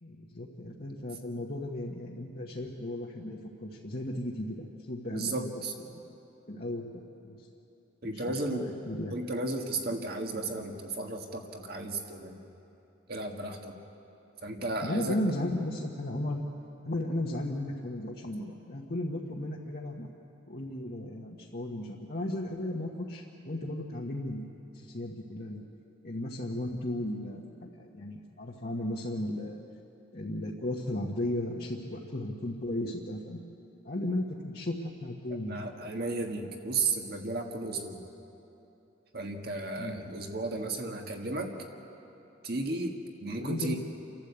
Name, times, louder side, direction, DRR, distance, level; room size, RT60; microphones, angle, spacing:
voice 1, 0.0-5.5 5.9-6.0 6.5-7.4 8.0-9.1 14.8-16.4 16.8-20.1 20.5-25.6 26.0-29.6 30.1-33.5 33.8-35.6 39.7-40.0 43.4-43.7, left 1 dB, 50° left, -3 dB, 1.3 m, -35 dB
voice 2, 5.1-5.7 8.0-8.7 9.1-12.5 13.1-13.8 14.4-15.2 35.5-38.0 39.1-41.5 42.4-42.9 43.2-43.8, right 2 dB, 50° right, 3 dB, 1.8 m, -34 dB
29.5 x 12.0 x 8.3 m, 3.0 s
head